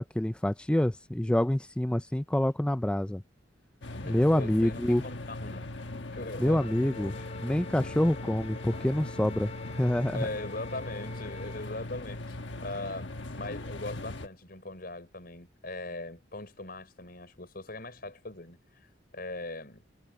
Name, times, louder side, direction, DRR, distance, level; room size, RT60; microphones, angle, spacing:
voice 1, 0.0-3.2 4.0-5.0 6.4-7.1 7.4-9.5 9.8-10.3, left 1 dB, 5° left, 0.3 m, -27 dB
sound 1, 3.8-14.3, left 2 dB, 75° left, 1.3 m, -40 dB
voice 2, 3.9-5.8 6.1-7.3 10.1-19.8, left 2 dB, 55° left, 5.7 m, -40 dB
Wind instrument woodwind instrument, 6.5-11.7, left 3 dB, 35° left, 4.7 m, -46 dB
head